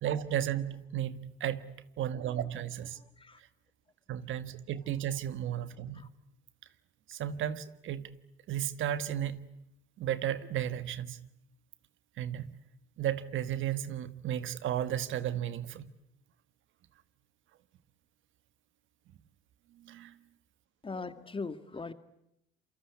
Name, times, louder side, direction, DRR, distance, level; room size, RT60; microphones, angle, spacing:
voice 1, 0.0-3.0 3.4-3.5 4.1-6.1 7.1-8.2 8.5-9.5 10.0-11.3 12.2-12.5 13.0-15.9 19.7-20.2, right 10 dB, 80° right, 13 dB, 1.5 m, -34 dB
voice 2, 3.0-3.4 5.9-6.1 20.8-21.9, left 4 dB, 25° left, 12 dB, 1.9 m, -40 dB
28.0 x 24.0 x 8.3 m, 0.79 s
cardioid pair, 90°, 20 cm